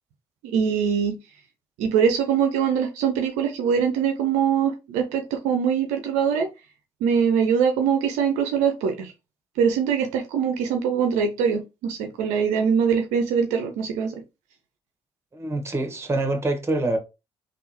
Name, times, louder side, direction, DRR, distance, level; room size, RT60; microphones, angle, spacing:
voice 1, 0.5-1.2 1.8-6.5 7.0-9.1 9.6-14.1, right 7 dB, 75° right, 0.6 m, -23 dB
voice 2, 15.3-17.0, right 2 dB, 20° right, 1.3 m, -25 dB
3.5 x 2.4 x 2.9 m
hypercardioid pair, 50°, 12 cm